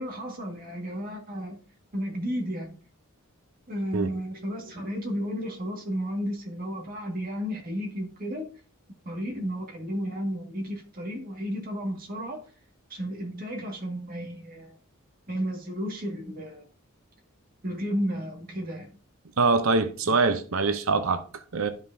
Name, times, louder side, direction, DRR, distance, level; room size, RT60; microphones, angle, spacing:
voice 1, 0.0-1.6 1.9-2.8 3.7-8.5 9.1-12.4 12.9-14.8 15.3-16.7 17.6-18.9, equal, 40° right, 1.9 m, -33 dB
voice 2, 19.4-21.7, right 4 dB, 70° right, 0.7 m, -24 dB
11.5 x 5.4 x 2.7 m
head